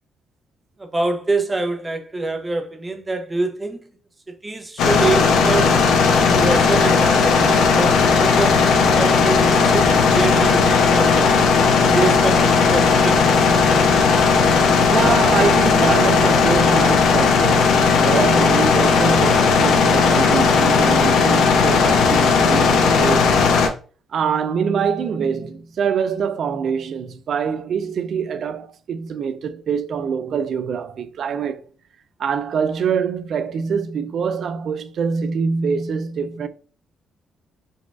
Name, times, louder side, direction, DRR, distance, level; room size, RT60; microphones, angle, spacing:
voice 1, 0.8-3.8 4.3-5.8 6.2-11.3 11.9-13.4, right 3 dB, 20° right, 0.6 m, -25 dB
sound 1, 4.8-23.7, left 5 dB, 80° left, 0.5 m, -16 dB
voice 2, 14.9-23.4 24.1-31.6 32.2-36.5, right 6 dB, 60° right, 0.3 m, -24 dB
3.9 x 2.4 x 2.3 m
cardioid pair, 90°, 0 cm